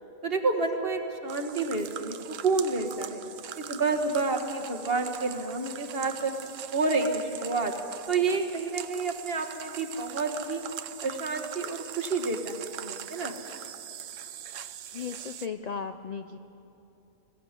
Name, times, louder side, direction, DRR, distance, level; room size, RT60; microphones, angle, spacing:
voice 1, 0.2-3.2 3.6-6.3 6.7-7.7 8.1-10.6 11.0-13.4, right 3 dB, 45° right, 5 dB, 1.7 m, -29 dB
sound 1, 1.3-15.5, right 10 dB, 70° right, 1.0 m, -41 dB
voice 2, 14.9-16.4, left 6 dB, 70° left, 10 dB, 0.3 m, -36 dB
21.5 x 16.0 x 8.1 m, 2.9 s
omnidirectional pair, 1.4 m